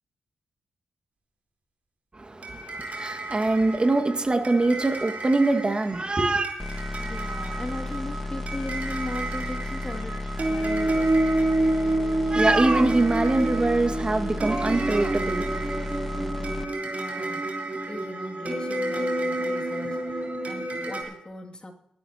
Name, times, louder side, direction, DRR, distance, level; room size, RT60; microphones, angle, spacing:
voice 1, 2.1-6.5 12.3-15.7, right 2 dB, 35° right, 2.0 m, -23 dB
sound 1, 2.4-21.0, right 2 dB, 55° right, 4.3 m, -29 dB
sound 2, 6.6-16.6, left 2 dB, 5° left, 1.1 m, -33 dB
voice 2, 7.0-11.2 16.1-21.7, left 2 dB, 30° left, 2.6 m, -38 dB
19.5 x 12.0 x 3.0 m
supercardioid pair, 45°, 3 cm